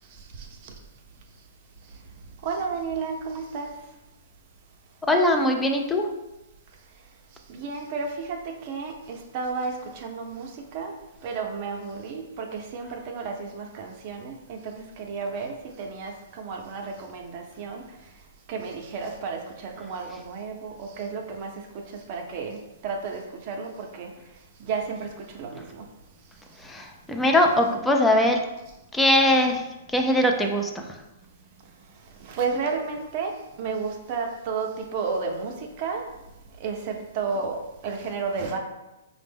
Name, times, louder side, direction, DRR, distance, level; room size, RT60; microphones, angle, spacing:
voice 1, 2.4-3.7 7.5-8.4 8.6-10.9 11.2-17.8 18.5-21.5 22.1-22.6 22.8-24.1 24.7-25.1 25.4-25.8 32.3-33.3 33.6-35.5 35.8-36.0 36.6-37.6 37.8-38.6, right 5 dB, 40° right, 2 dB, 0.6 m, -32 dB
voice 2, 5.0-6.1 26.6-28.5 28.9-29.6 29.9-30.8, left 1 dB, 5° left, 3 dB, 0.4 m, -21 dB
4.9 x 2.1 x 3.4 m, 0.98 s
hypercardioid pair, 145°, 0 cm